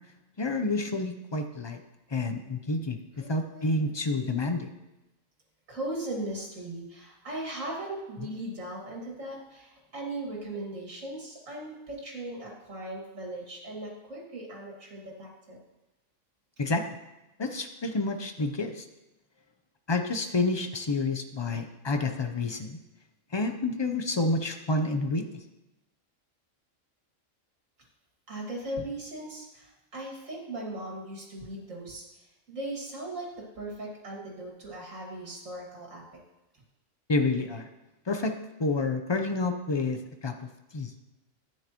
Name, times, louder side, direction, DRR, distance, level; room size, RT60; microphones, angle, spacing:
voice 1, 0.4-1.8 2.1-4.7 16.6-16.8 17.4-18.8 19.9-22.8 23.3-25.4 37.1-37.7 38.1-38.3 38.6-40.4 40.7-40.9, left 2 dB, 30° left, 6 dB, 0.5 m, -29 dB
voice 2, 3.1-3.8 4.3-4.5 5.7-15.6 28.3-36.0, right 1 dB, 80° right, -2 dB, 2.5 m, -38 dB
11.0 x 9.0 x 3.0 m, 1.0 s
omnidirectional pair, 1.3 m